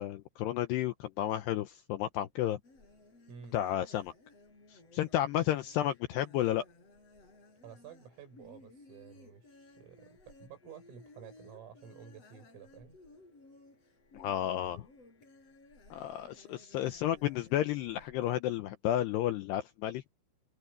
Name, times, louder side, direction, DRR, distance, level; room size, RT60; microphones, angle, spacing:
voice 1, 0.0-2.6 3.5-4.1 4.7-6.7 14.1-14.9 15.9-20.0, left 12 dB, 80° left, 2.4 m, -32 dB
sound 1, 2.6-18.4, left 2 dB, 30° left, 8.2 m, -58 dB
voice 2, 7.6-13.0 16.5-16.6, right 7 dB, 85° right, 8.9 m, -52 dB
omnidirectional pair, 5.8 m